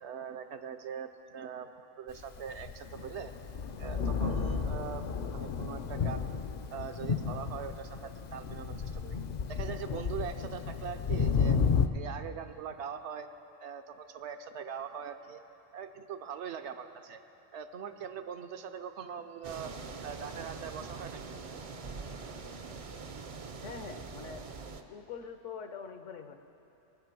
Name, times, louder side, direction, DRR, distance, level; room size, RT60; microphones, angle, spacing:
voice 1, 0.0-3.3 3.7-5.1 5.3-6.3 6.7-9.2 9.5-11.6 11.9-13.3 13.6-15.4 15.7-17.2 17.5-19.7 20.0-21.2, right 7 dB, 70° right, 8 dB, 0.9 m, -42 dB
Thunder, 2.3-11.9, left 5 dB, 55° left, 0.5 m, -32 dB
sound 1, 19.4-24.8, right 4 dB, 40° right, 0.5 m, -43 dB
voice 2, 23.6-24.4 24.9-26.4, left 6 dB, 80° left, 7 dB, 1.2 m, -44 dB
21.5 x 7.5 x 6.0 m, 2.9 s
omnidirectional pair, 1.3 m